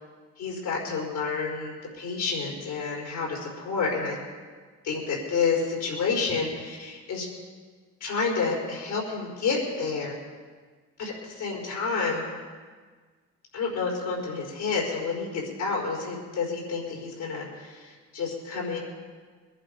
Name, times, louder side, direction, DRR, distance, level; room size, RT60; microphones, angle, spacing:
voice 1, 0.4-4.2 4.8-7.3 8.0-10.2 11.0-12.2 13.5-18.8, left 4 dB, 80° left, -3 dB, 5.3 m, -29 dB
22.0 x 11.0 x 5.4 m, 1.5 s
cardioid pair, 90°, 30 cm